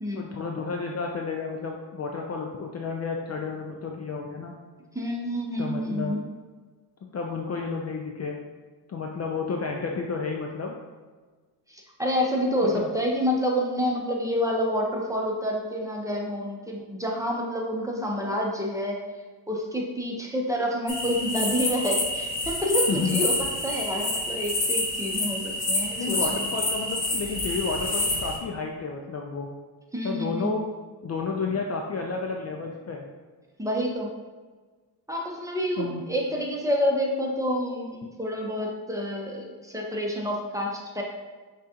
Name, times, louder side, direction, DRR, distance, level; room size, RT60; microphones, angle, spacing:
voice 1, 0.1-4.6 5.6-6.1 7.0-8.4 8.9-10.7 12.6-12.9 22.9-23.2 26.0-29.5 30.0-30.6 31.0-33.1 35.8-36.0, left 4 dB, 35° left, 1 dB, 0.4 m, -31 dB
voice 2, 4.9-6.2 11.7-19.0 19.5-23.3 23.6-26.5 29.9-30.5 33.6-34.1 35.1-41.0, equal, 5° right, -1 dB, 0.7 m, -28 dB
sound 1, 20.9-28.4, left 2 dB, 55° left, 1.3 m, -28 dB
6.1 x 2.4 x 2.8 m, 1.4 s
cardioid pair, 70°, 46 cm